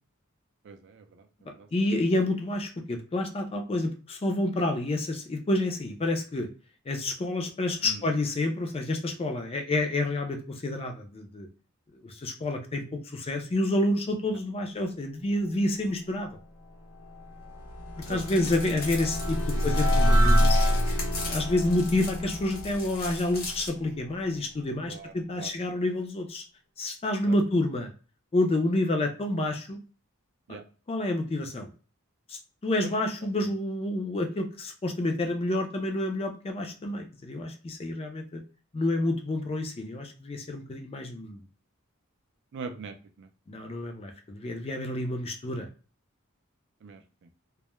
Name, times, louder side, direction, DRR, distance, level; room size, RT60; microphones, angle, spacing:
voice 1, 0.6-1.7 7.8-8.1 18.1-19.1 19.5-19.8 24.9-25.5 27.2-27.4 30.5-30.6 32.8-32.9 33.4-33.5 42.5-43.3 46.8-47.3, right 4 dB, 55° right, 6 dB, 0.4 m, -43 dB
voice 2, 1.7-6.5 6.9-11.5 12.0-16.4 18.1-20.7 21.3-26.4 26.8-27.9 28.3-29.8 30.9-31.7 32.3-38.4 38.7-41.4 43.5-45.7, left 1 dB, 30° left, 5 dB, 0.4 m, -29 dB
sound 1, 16.7-23.9, equal, 75° left, 0.8 m, -26 dB
sound 2, 18.0-23.7, left 2 dB, 45° left, 0.9 m, -39 dB
2.2 x 2.0 x 2.9 m, 0.37 s
head